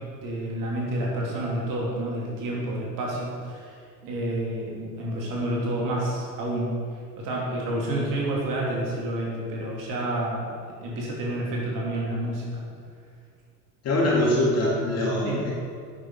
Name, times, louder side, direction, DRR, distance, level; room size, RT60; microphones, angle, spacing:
voice 1, 0.2-3.8 4.0-6.7 7.1-12.6 15.2-15.4, right 1 dB, 40° right, -3 dB, 2.9 m, -29 dB
voice 2, 13.8-15.5, left 1 dB, 30° left, -4 dB, 3.1 m, -23 dB
11.5 x 9.2 x 4.0 m, 2.2 s
figure-of-eight pair, 75°, 49 cm